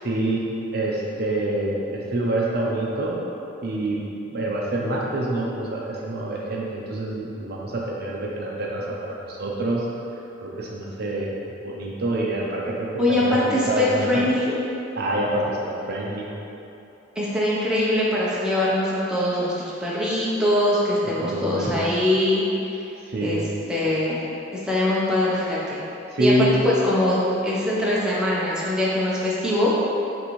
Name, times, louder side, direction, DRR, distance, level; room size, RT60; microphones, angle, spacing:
voice 1, 0.0-3.2 3.6-4.0 4.3-9.9 10.4-14.2 15.0-16.3 21.2-21.9 23.1-23.5 26.1-26.6, right 1 dB, 50° right, -3 dB, 0.5 m, -26 dB
voice 2, 13.0-14.5 17.2-22.9 23.2-23.4 23.7-24.2 24.6-25.8 26.2-27.2 27.4-29.7, left 1 dB, 5° right, -8 dB, 0.6 m, -22 dB
5.8 x 2.6 x 3.0 m, 2.8 s
head